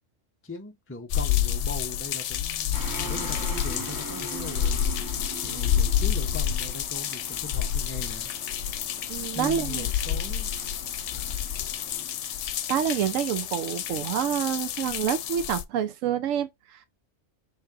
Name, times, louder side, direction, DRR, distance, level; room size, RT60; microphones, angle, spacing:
voice 1, 0.4-4.8 5.4-8.3 9.3-10.5 11.1-11.5, left 2 dB, 20° left, 0.3 m, -40 dB
sound 1, 1.1-15.6, left 9 dB, 70° left, 0.9 m, -29 dB
sound 2, 2.7-15.5, right 2 dB, 20° right, 1.0 m, -42 dB
voice 2, 9.1-9.9 12.7-16.9, right 9 dB, 85° right, 1.0 m, -28 dB
5.7 x 3.3 x 2.7 m
omnidirectional pair, 1.3 m